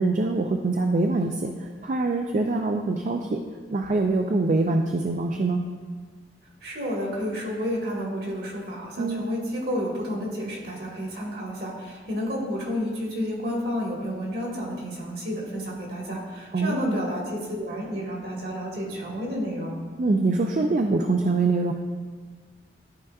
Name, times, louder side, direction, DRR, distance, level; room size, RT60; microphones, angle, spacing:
voice 1, 0.0-3.4 3.7-5.7 9.0-9.2 16.5-17.0 20.0-21.7, right 3 dB, 45° right, 3 dB, 0.4 m, -24 dB
voice 2, 6.6-19.7, equal, 60° right, -3 dB, 1.7 m, -31 dB
12.5 x 4.6 x 2.4 m, 1.5 s
head